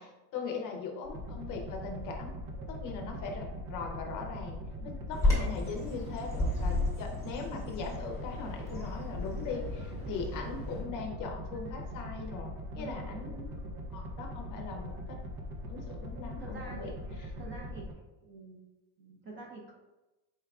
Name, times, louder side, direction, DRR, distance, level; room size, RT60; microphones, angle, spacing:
voice 1, 0.0-2.3 2.7-4.6 4.8-13.5 13.9-15.2 15.7-16.9, left 4 dB, 40° left, 2 dB, 0.6 m, -40 dB
sound 1, 1.0-17.9, equal, 90° right, 0.9 m, -41 dB
Bird vocalization bird call bird song, 5.1-10.8, left 2 dB, 5° left, 0.8 m, -33 dB
voice 2, 12.7-13.2 16.4-17.0 17.4-17.9 18.2-19.7, right 2 dB, 25° right, -2 dB, 0.5 m, -47 dB
4.5 x 3.5 x 2.3 m, 1.0 s
cardioid pair, 165°, 47 cm